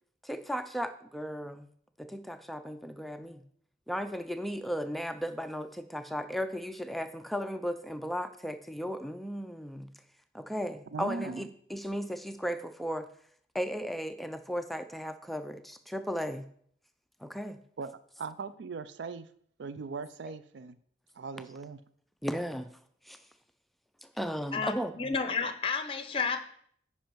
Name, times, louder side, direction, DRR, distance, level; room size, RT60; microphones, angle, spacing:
voice 1, 0.2-1.7 2.0-3.4 3.9-9.9 10.3-13.1 13.5-16.5 17.2-17.6 22.2-22.7 23.0-23.2 24.0-24.9, equal, ahead, 9 dB, 0.3 m, -35 dB
voice 2, 10.9-11.5 17.8-17.9 18.2-19.3 19.6-20.8 21.2-21.8, right 4 dB, 80° right, 14 dB, 0.4 m, -39 dB
voice 3, 24.5-26.4, left 5 dB, 30° left, 9 dB, 0.7 m, -31 dB
9.3 x 5.5 x 4.5 m, 0.63 s
head